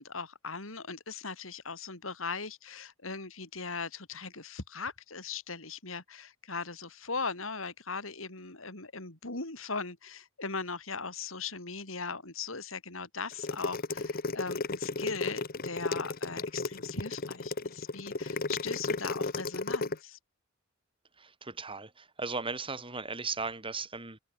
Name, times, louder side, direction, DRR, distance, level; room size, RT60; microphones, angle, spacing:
voice 1, 0.0-20.2, left 4 dB, 80° left, 4.4 m, -39 dB
sound 1, 13.3-20.0, left 3 dB, 45° left, 1.1 m, -33 dB
voice 2, 21.2-24.2, right 4 dB, 25° right, 5.2 m, -37 dB
head